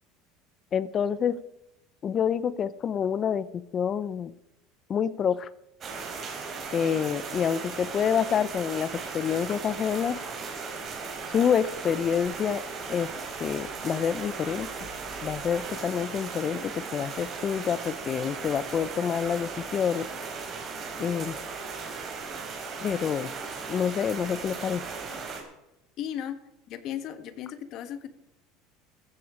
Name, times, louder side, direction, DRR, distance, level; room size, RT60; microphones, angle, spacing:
voice 1, 0.7-1.4 2.0-4.3 4.9-5.5 6.7-10.2 11.3-12.6 12.9-13.1 13.4-14.7 15.2-20.1 21.0-21.4 22.8-23.3 23.7-24.8, left 8 dB, 30° left, 18 dB, 0.7 m, -27 dB
sound 1, 5.8-25.4, right 4 dB, 30° right, 4.0 m, -37 dB
voice 2, 26.0-26.4 26.7-28.1, left 10 dB, 45° left, 11 dB, 1.5 m, -35 dB
14.5 x 14.5 x 5.0 m, 0.89 s
cardioid pair, 155°, 0 cm